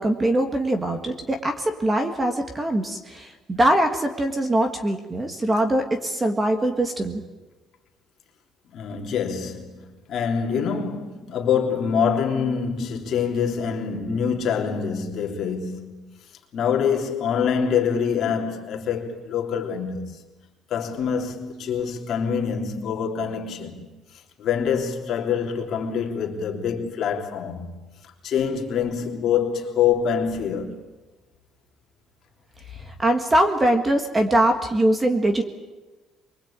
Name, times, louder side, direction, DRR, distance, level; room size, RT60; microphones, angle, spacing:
voice 1, 0.0-7.2 32.9-35.4, right 1 dB, 15° right, 1.6 m, -22 dB
voice 2, 8.7-16.1 16.5-20.3 20.7-23.9 24.4-27.7 28.2-30.8, left 7 dB, 45° left, 3.5 m, -25 dB
24.0 x 23.5 x 8.9 m
cardioid pair, 170°, 0 cm